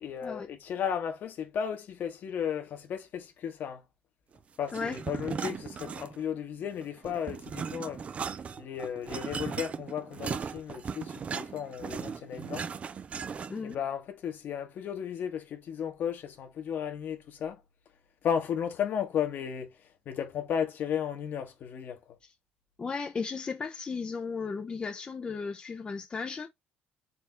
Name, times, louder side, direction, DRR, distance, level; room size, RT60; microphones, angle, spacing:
voice 1, 0.0-3.8 4.6-8.0 8.6-12.7 13.6-17.6 18.2-19.7 20.0-22.0, left 8 dB, 60° left, 1.4 m, -34 dB
sound 1, 4.7-6.4 6.7-13.7, right 6 dB, 35° right, 0.4 m, -37 dB
voice 2, 22.8-26.5, left 5 dB, 25° left, 0.7 m, -35 dB
4.4 x 3.5 x 3.2 m
cardioid pair, 130°, 4 cm